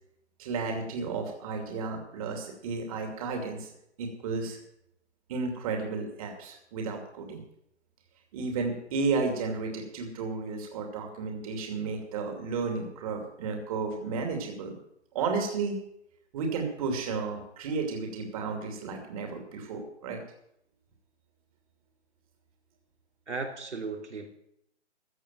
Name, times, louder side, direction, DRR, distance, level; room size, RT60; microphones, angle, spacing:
voice 1, 0.4-3.7 4.0-4.6 5.3-7.4 8.3-14.7 15.1-15.8 16.3-20.2, right 4 dB, 30° right, 2 dB, 2.7 m, -33 dB
voice 2, 23.3-24.4, right 4 dB, 85° right, 1 dB, 3.0 m, -36 dB
15.0 x 6.2 x 9.0 m, 0.76 s
hypercardioid pair, 150°, 34 cm